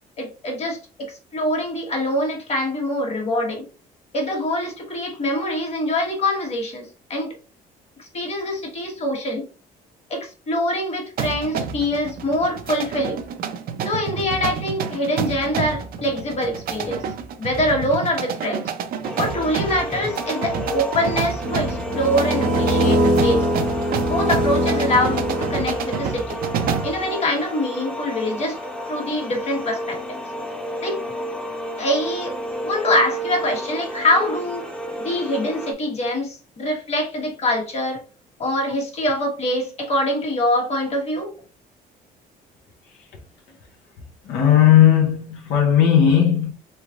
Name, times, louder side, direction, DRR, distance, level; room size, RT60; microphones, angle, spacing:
voice 1, 0.2-3.7 4.1-7.3 8.0-9.4 10.1-13.2 13.8-17.0 17.4-18.7 19.1-23.5 24.0-26.4 26.8-28.6 28.9-30.0 30.8-31.0 31.8-32.3 32.6-34.7 35.0-38.0 38.4-41.3, left 1 dB, 40° left, 1.4 m, -24 dB
sound 1, 11.2-27.0, right 7 dB, 60° right, 0.5 m, -29 dB
sound 2, 19.0-35.7, equal, 5° left, 0.7 m, -31 dB
sound 3, 21.4-26.1, equal, 90° right, 1.2 m, -22 dB
voice 2, 44.3-46.5, left 10 dB, 80° left, 0.7 m, -16 dB
3.2 x 3.2 x 2.4 m
cardioid pair, 110°, 17 cm